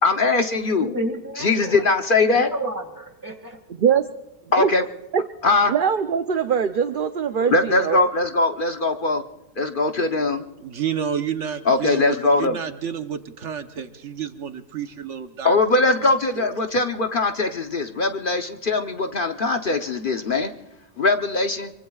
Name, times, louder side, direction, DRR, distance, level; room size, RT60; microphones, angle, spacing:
voice 1, 0.0-0.9 1.4-2.5 4.5-4.8 5.4-5.7 7.4-9.2 9.6-10.4 11.7-12.6 15.4-20.5 21.0-21.7, left 3 dB, 45° left, 6 dB, 1.0 m, -21 dB
voice 2, 0.8-1.9 2.4-3.4, right 1 dB, 15° right, 5 dB, 2.1 m, -30 dB
voice 3, 5.7-8.0, right 7 dB, 50° right, 9 dB, 0.7 m, -22 dB
voice 4, 10.6-15.6 16.0-16.5, right 8 dB, 70° right, 8 dB, 1.3 m, -30 dB
25.5 x 24.0 x 2.4 m, 1.0 s
omnidirectional pair, 1.3 m